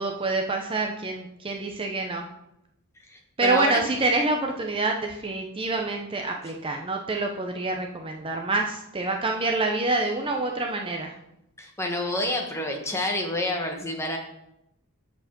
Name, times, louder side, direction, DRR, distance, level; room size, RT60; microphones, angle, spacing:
voice 1, 0.0-2.2 3.4-11.1, right 3 dB, 25° right, 2 dB, 0.6 m, -27 dB
voice 2, 3.1-3.8 11.6-14.2, left 1 dB, 10° left, 2 dB, 1.2 m, -28 dB
7.9 x 4.6 x 5.9 m, 0.83 s
head